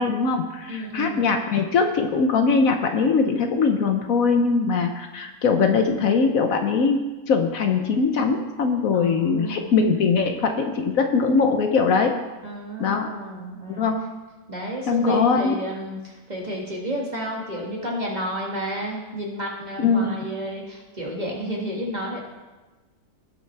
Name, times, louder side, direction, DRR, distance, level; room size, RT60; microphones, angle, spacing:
voice 1, 0.0-7.0 7.3-12.1 12.8-13.1 13.8-14.0 14.9-15.6 19.8-20.2, left 4 dB, 65° left, 5 dB, 1.1 m, -21 dB
voice 2, 0.7-1.3 8.9-9.8 12.4-13.9 14.5-22.2, equal, 25° right, -3 dB, 2.0 m, -31 dB
18.0 x 6.2 x 3.4 m, 1.2 s
omnidirectional pair, 1.6 m